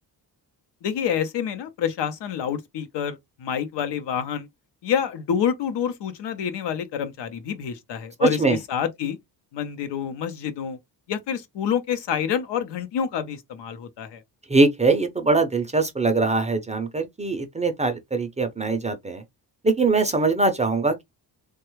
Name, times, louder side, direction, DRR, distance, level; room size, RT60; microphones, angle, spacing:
voice 1, 0.8-4.5 4.8-9.2 9.5-10.8 11.1-14.2, left 8 dB, 85° left, 0.7 m, -27 dB
voice 2, 14.5-19.2 19.6-21.0, right 3 dB, 20° right, 0.4 m, -22 dB
3.2 x 2.3 x 3.0 m
wide cardioid pair, 165°, 41 cm